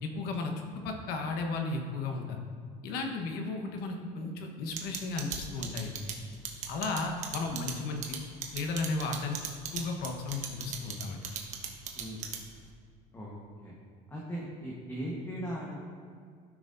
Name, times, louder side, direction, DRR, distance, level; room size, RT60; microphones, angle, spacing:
voice 1, 0.0-2.4 2.8-6.0 6.7-8.2 8.5-9.4 9.7-11.2, left 3 dB, 65° left, 3 dB, 1.2 m, -34 dB
sound 1, 4.8-12.7, right 8 dB, 45° right, 1.2 m, -37 dB
voice 2, 11.9-12.3 13.1-13.7 14.1-15.8, equal, 15° left, -4 dB, 1.2 m, -39 dB
13.5 x 6.1 x 2.6 m, 2.1 s
cardioid pair, 140°, 17 cm